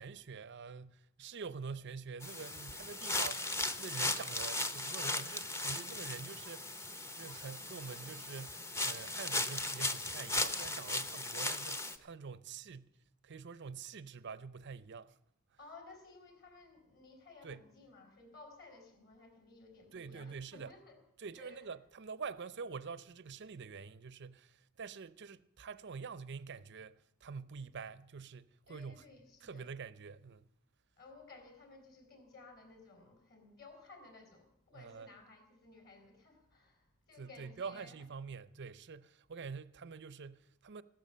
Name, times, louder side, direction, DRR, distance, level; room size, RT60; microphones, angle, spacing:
voice 1, 0.0-6.8 7.2-12.9 13.2-15.2 17.4-17.6 19.9-20.7 21.2-29.1 29.4-30.5 34.7-35.1 37.2-40.8, right 5 dB, 55° right, 0.6 m, -46 dB
sound 1, 2.2-12.0, left 2 dB, 10° left, 0.8 m, -37 dB
voice 2, 15.6-21.0 21.4-21.7 28.7-29.7 31.0-38.0, left 3 dB, 45° left, 4.3 m, -57 dB
15.5 x 12.5 x 6.7 m
head